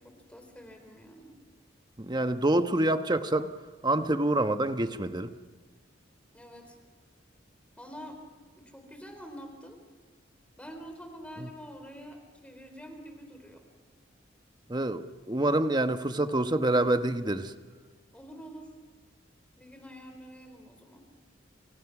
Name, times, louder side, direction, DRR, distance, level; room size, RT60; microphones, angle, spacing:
voice 1, 0.0-1.4 6.3-6.8 7.8-8.2 8.6-9.8 10.6-13.7 18.1-18.7 19.6-21.1, equal, 5° left, 5 dB, 4.1 m, -46 dB
voice 2, 2.0-3.5 3.8-5.3 11.4-11.5 14.7-17.5, right 1 dB, 25° right, 9 dB, 1.1 m, -27 dB
28.5 x 28.0 x 6.0 m, 1.5 s
head